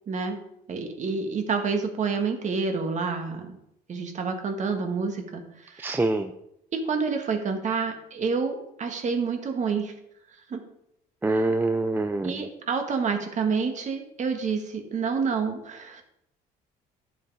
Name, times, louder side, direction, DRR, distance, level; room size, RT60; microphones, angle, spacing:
voice 1, 0.1-0.4 0.7-3.6 3.9-5.8 6.7-9.9 10.5-10.6 12.2-16.0, right 5 dB, 45° right, 5 dB, 1.8 m, -28 dB
voice 2, 5.8-6.3 11.2-12.5, right 2 dB, 10° right, 8 dB, 0.5 m, -25 dB
11.0 x 7.1 x 4.8 m, 0.80 s
cardioid pair, 110°, 17 cm